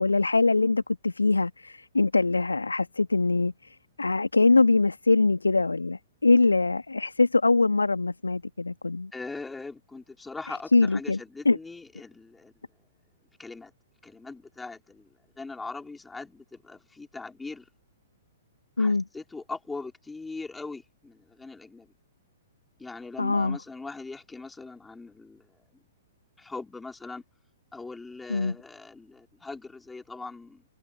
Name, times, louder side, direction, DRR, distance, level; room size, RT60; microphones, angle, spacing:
voice 1, 0.0-9.1 10.7-11.2 11.5-11.6 18.8-19.0 23.2-23.6 28.3-28.6, left 3 dB, 80° left, 1.7 m, -23 dB
voice 2, 9.1-12.5 13.4-13.7 14.0-15.1 15.4-17.7 18.8-21.9 22.8-25.6 26.4-27.2 27.7-30.6, left 3 dB, 5° left, 3.9 m, -41 dB
figure-of-eight pair, 115°, 0 cm